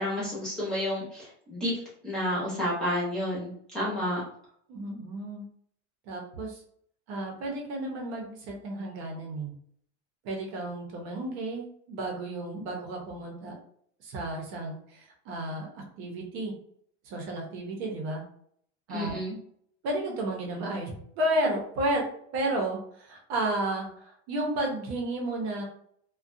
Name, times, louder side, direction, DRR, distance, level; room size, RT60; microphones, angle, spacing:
voice 1, 0.0-1.7 2.0-4.2 18.9-19.4, equal, ahead, -9 dB, 0.8 m, -30 dB
voice 2, 4.7-5.4 6.1-6.6 7.1-9.5 10.2-13.5 14.0-16.5 17.0-18.2 18.9-19.1 19.8-22.0 22.3-25.6, right 1 dB, 55° right, 0 dB, 0.8 m, -32 dB
2.4 x 2.3 x 2.6 m, 0.65 s
cardioid pair, 170°, 36 cm